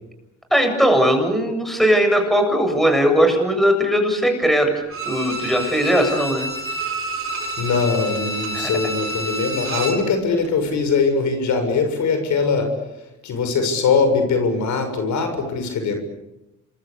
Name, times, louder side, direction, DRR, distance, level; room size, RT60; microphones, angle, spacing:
voice 1, 0.5-4.7 5.0-6.5 8.5-8.7, equal, ahead, 5 dB, 7.6 m, -18 dB
Bowed string instrument, 4.9-10.1 10.4-10.5, right 1 dB, 45° right, 6.7 m, -28 dB
voice 2, 7.6-12.7 13.2-15.9, left 4 dB, 70° left, 7 dB, 6.8 m, -21 dB
27.0 x 23.0 x 8.6 m, 0.93 s
cardioid pair, 90°, 30 cm